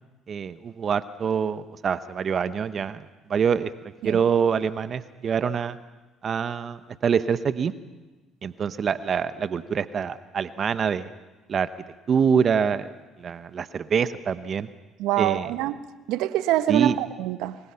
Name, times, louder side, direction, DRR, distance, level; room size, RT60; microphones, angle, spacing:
voice 1, 0.3-3.0 3.3-3.7 4.0-5.8 6.2-7.7 8.4-11.1 11.5-11.7 12.1-12.9 13.2-14.7 15.2-15.5 16.7-17.0, right 7 dB, 50° right, 13 dB, 1.0 m, -25 dB
voice 2, 15.0-15.8 16.1-17.6, right 13 dB, 75° right, 13 dB, 1.0 m, -25 dB
26.5 x 21.5 x 5.8 m, 1.2 s
hypercardioid pair, 65°, 0 cm